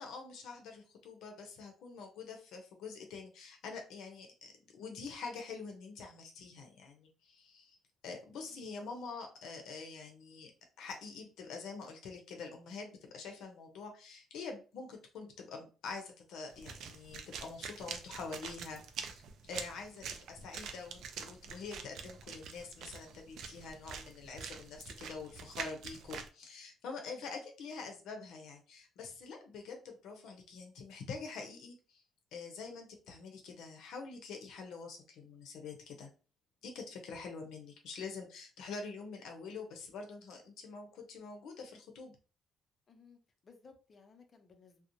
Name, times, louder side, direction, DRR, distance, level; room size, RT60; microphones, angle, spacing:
voice 1, 0.0-7.8 8.0-10.5 10.8-18.8 19.1-32.0 32.3-36.1 36.6-42.2, left 4 dB, 75° left, 0.6 m, -46 dB
sound 1, 16.5-26.3, right 6 dB, 65° right, 0.4 m, -46 dB
voice 2, 42.9-44.9, left 5 dB, 30° left, 0.4 m, -60 dB
2.9 x 2.0 x 2.5 m
cardioid pair, 165°, 0 cm